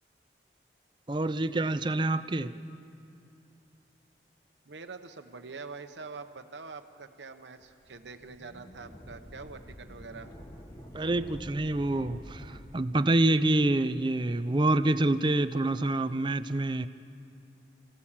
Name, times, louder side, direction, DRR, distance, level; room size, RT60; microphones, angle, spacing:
voice 1, 1.1-2.5 10.9-16.9, right 2 dB, 25° right, 11 dB, 0.5 m, -27 dB
voice 2, 4.7-10.3, right 4 dB, 85° right, 6 dB, 0.9 m, -45 dB
sound 1, 7.6-12.6, equal, 20° left, 1.4 m, -47 dB
28.0 x 16.0 x 7.4 m, 2.7 s
head